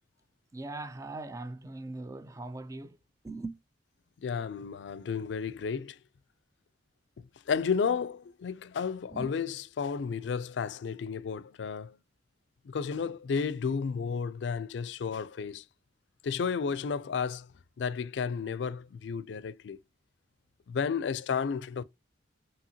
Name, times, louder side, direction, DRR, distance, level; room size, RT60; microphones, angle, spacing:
voice 1, 0.5-3.0 3.2-3.6 9.1-9.3, right 2 dB, 20° right, 0.4 m, -40 dB
voice 2, 4.2-6.0 7.5-11.9 12.7-15.6 16.2-17.5 17.8-19.8 20.7-21.8, left 6 dB, 75° left, 0.4 m, -32 dB
5.6 x 2.8 x 2.7 m
head